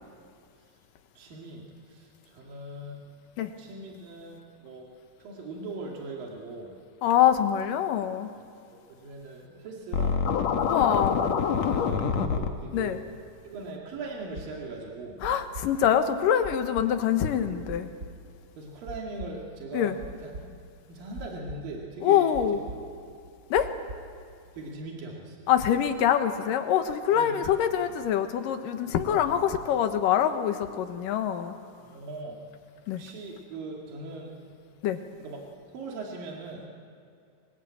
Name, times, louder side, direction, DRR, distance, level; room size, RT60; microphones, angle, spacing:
voice 1, 1.2-3.1 3.6-4.9 5.2-6.7 8.7-10.2 11.4-13.0 13.4-15.2 18.6-19.9 20.2-20.4 20.9-22.2 24.5-25.5 27.1-27.5 31.8-32.4 33.0-34.5 35.2-35.4 35.7-36.7, right 2 dB, 80° right, -1 dB, 4.1 m, -40 dB
voice 2, 7.0-8.3 10.6-11.2 12.7-13.0 15.2-17.9 19.7-20.0 22.0-22.6 23.5-23.7 25.5-31.5 32.9-33.0 34.8-35.0, left 9 dB, 75° left, 7 dB, 2.9 m, -25 dB
Scratching (performance technique), 9.9-12.5, left 6 dB, 60° left, 2.4 m, -26 dB
sound 1, 14.3-22.9 23.2-24.8, right 2 dB, 30° right, 2.0 m, -43 dB
29.0 x 20.0 x 8.6 m, 2.5 s
omnidirectional pair, 3.9 m